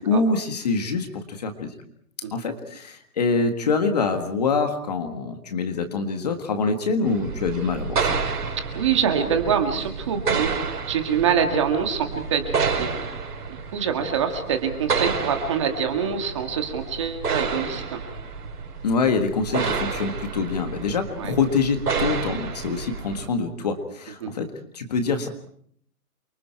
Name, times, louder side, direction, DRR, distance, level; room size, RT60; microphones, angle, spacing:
voice 1, 0.0-1.7 2.3-8.2 18.8-25.3, left 4 dB, 25° left, 6 dB, 1.7 m, -25 dB
sound 1, 7.0-23.3, right 5 dB, 80° right, 5.1 m, -30 dB
voice 2, 8.7-10.5 10.9-12.9 13.5-18.0 21.2-21.4 24.2-24.3, right 7 dB, 20° right, 5 dB, 1.7 m, -25 dB
29.0 x 24.5 x 4.6 m, 0.64 s
hypercardioid pair, 180°, 46 cm